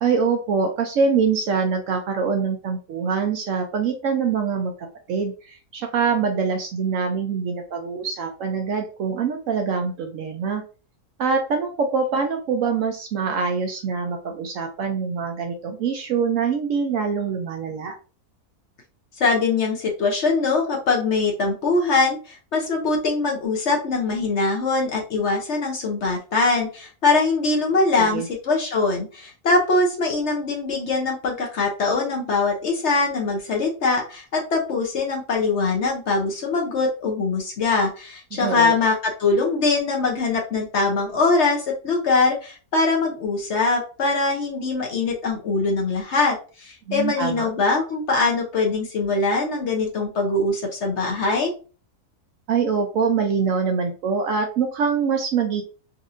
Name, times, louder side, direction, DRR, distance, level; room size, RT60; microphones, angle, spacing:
voice 1, 0.0-4.7 5.1-10.6 11.2-17.9 28.0-28.3 38.3-38.7 46.9-47.5 52.5-55.6, right 5 dB, 70° right, 4 dB, 0.8 m, -24 dB
voice 2, 19.2-51.5, left 3 dB, 55° left, 0 dB, 0.9 m, -22 dB
4.1 x 2.6 x 2.5 m, 0.36 s
omnidirectional pair, 1.7 m